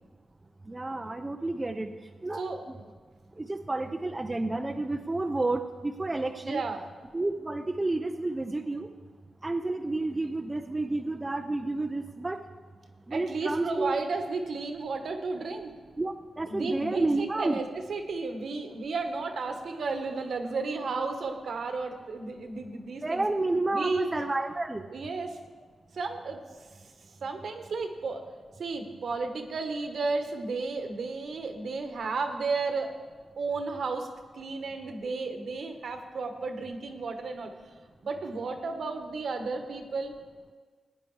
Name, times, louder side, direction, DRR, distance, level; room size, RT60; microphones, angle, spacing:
voice 1, 0.7-1.9 2.2-2.8 3.4-6.6 7.1-8.9 9.4-12.4 13.1-14.0 16.0-17.6 23.0-24.9, right 2 dB, 20° right, 5 dB, 0.5 m, -30 dB
voice 2, 6.4-6.8 13.1-15.7 16.5-23.2 23.7-24.1 24.9-25.4 25.9-26.4 27.2-28.3 28.6-32.9 33.4-34.1 34.4-37.5 38.0-40.1, right 3 dB, 70° right, 5 dB, 1.2 m, -33 dB
16.5 x 9.7 x 3.3 m, 1.5 s
cardioid pair, 90°, 0 cm